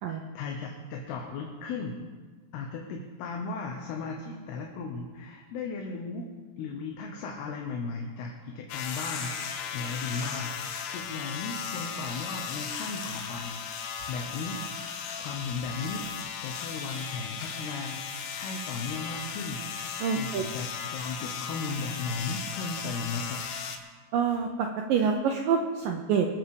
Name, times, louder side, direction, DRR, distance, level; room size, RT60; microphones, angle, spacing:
voice 1, 0.1-2.0 2.5-6.3 6.6-13.6 14.1-14.6 15.2-16.1 16.4-19.6 20.1-23.4, left 4 dB, 75° left, 1 dB, 3.0 m, -36 dB
sound 1, 8.7-23.8, left 7 dB, 90° left, 3.3 m, -36 dB
voice 2, 20.0-20.4 24.1-26.3, right 6 dB, 80° right, 3 dB, 2.0 m, -26 dB
24.5 x 8.2 x 4.9 m, 1.4 s
omnidirectional pair, 5.0 m